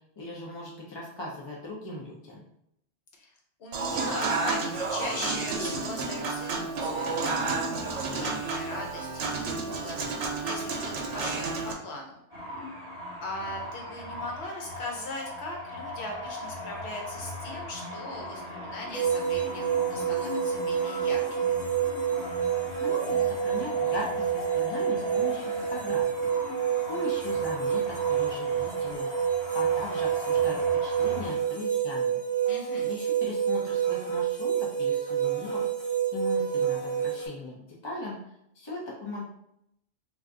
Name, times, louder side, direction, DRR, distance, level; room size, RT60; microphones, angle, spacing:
voice 1, 0.2-2.4 22.8-26.1 26.9-29.1 29.5-32.2 32.9-35.7 36.1-38.2 38.5-39.2, left 2 dB, 30° left, -4 dB, 0.5 m, -38 dB
voice 2, 3.6-12.2 13.2-21.6 32.5-32.9, left 2 dB, 70° left, 0 dB, 1.0 m, -39 dB
Human voice / Acoustic guitar / Piano, 3.7-11.7, right 3 dB, 85° right, 0.9 m, -31 dB
sound 1, 12.3-31.3, left 2 dB, 20° right, 1.4 m, -39 dB
sound 2, 18.9-37.3, right 8 dB, 5° right, 1.2 m, -28 dB
2.5 x 2.3 x 3.6 m, 0.75 s
omnidirectional pair, 1.2 m